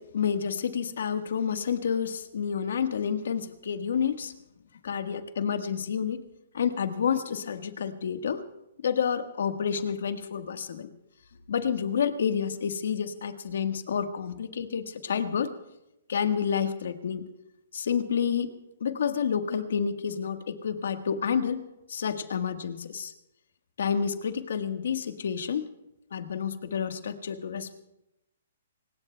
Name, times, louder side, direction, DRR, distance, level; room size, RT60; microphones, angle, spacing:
voice 1, 0.0-4.3 4.8-6.2 6.5-8.4 8.8-10.9 11.5-15.5 16.1-17.2 17.7-18.5 18.8-21.6 21.9-23.1 23.8-25.6 26.1-27.8, left 7 dB, 75° left, 8 dB, 1.4 m, -29 dB
25.0 x 20.5 x 2.3 m, 0.88 s
hypercardioid pair, 140°, 0 cm